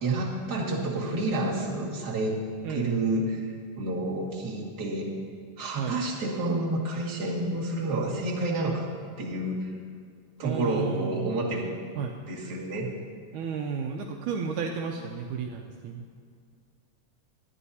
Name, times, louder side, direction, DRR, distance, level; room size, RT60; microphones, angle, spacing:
voice 1, 0.0-2.4 2.7-5.1 5.6-8.9 9.2-9.7 10.4-11.8 12.3-12.9, right 2 dB, 35° right, -5 dB, 2.1 m, -29 dB
voice 2, 2.6-3.0 5.8-6.0 10.4-11.5 12.0-12.1 13.3-16.1, right 6 dB, 80° right, 2 dB, 2.0 m, -33 dB
23.5 x 10.0 x 2.8 m, 2.1 s
omnidirectional pair, 3.8 m